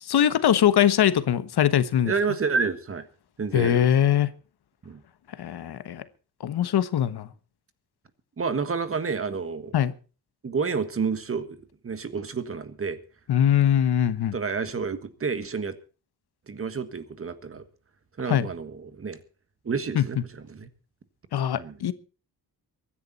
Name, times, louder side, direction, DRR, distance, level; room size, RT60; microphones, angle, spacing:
voice 1, 0.0-2.1 3.5-4.3 5.4-6.0 6.4-7.3 9.7-9.9 13.3-14.3 18.3-18.5 19.9-20.0 21.3-21.9, left 10 dB, 80° left, 1.3 m, -22 dB
voice 2, 2.0-3.1 3.4-3.9 4.8-5.0 8.4-9.7 10.4-13.0 14.3-15.8 16.5-17.6 18.2-19.2 19.6-20.7 21.5-21.8, right 5 dB, 35° right, 1.5 m, -29 dB
23.5 x 10.5 x 4.1 m
wide cardioid pair, 160°, 38 cm